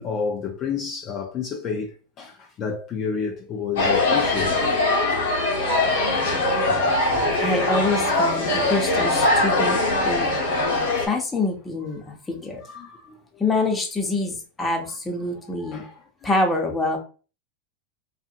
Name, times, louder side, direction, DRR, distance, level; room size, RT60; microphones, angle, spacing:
voice 1, 0.0-1.9 2.2-4.5 12.6-13.2 15.6-15.9, left 6 dB, 40° left, 0.5 m, -30 dB
sound 1, 3.8-11.1, left 2 dB, 80° left, 1.1 m, -21 dB
voice 2, 7.4-10.4 11.1-12.6 13.4-15.9 16.2-17.0, left 2 dB, 15° left, 0.9 m, -26 dB
2.7 x 2.5 x 2.5 m
hypercardioid pair, 105°, 0 cm